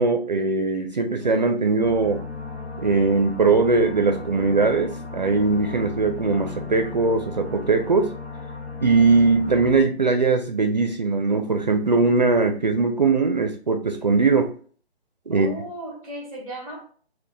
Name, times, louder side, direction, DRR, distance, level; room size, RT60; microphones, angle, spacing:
voice 1, 0.0-2.2 2.8-8.1 8.8-14.5 15.3-15.5, right 4 dB, 45° right, 0.4 m, -20 dB
sound 1, 1.8-9.8, left 4 dB, 85° left, 0.8 m, -36 dB
voice 2, 15.3-16.8, right 1 dB, 5° left, 0.5 m, -35 dB
4.4 x 2.1 x 3.2 m
figure-of-eight pair, 145°, 32 cm